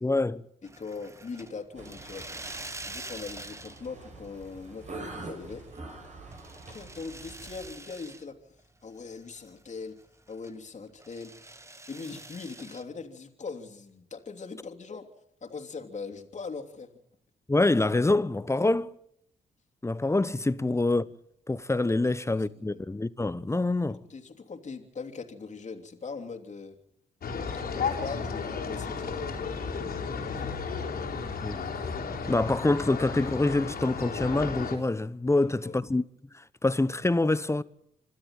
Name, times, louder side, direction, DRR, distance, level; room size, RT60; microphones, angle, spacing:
voice 1, 0.0-0.4 17.5-18.9 19.8-21.1 21.5-24.0 31.4-31.7 32.3-36.0 36.3-37.6, left 2 dB, 15° left, 1.0 m, -26 dB
voice 2, 0.6-2.3 2.8-5.7 6.7-8.4 8.8-10.0 10.3-11.5 11.9-15.1 15.4-16.9 22.1-22.2 22.5-22.8 23.9-26.8 27.7-29.2 30.2-30.6 35.4-35.8, left 4 dB, 45° left, 3.1 m, -41 dB
sound 1, 0.6-4.1 4.4-5.0 5.4-8.2 8.6-8.7 9.1-10.6 11.0-12.8, right 2 dB, 15° right, 1.4 m, -45 dB
sound 2, 1.7-7.7, right 2 dB, 45° right, 7.0 m, -45 dB
sound 3, 27.2-34.8, left 5 dB, 65° left, 3.5 m, -33 dB
26.5 x 13.0 x 9.0 m
supercardioid pair, 55°, 17 cm